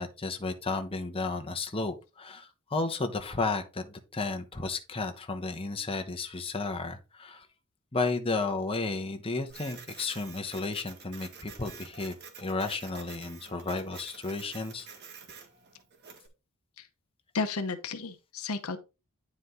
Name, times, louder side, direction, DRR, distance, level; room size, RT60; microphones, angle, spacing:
voice 1, 0.0-7.5 7.9-14.9, left 3 dB, 25° left, 1.1 m, -33 dB
Printer, 9.5-16.3, right 6 dB, 50° right, 1.7 m, -49 dB
voice 2, 17.3-18.8, left 3 dB, 70° left, 0.9 m, -33 dB
9.6 x 5.0 x 3.8 m
head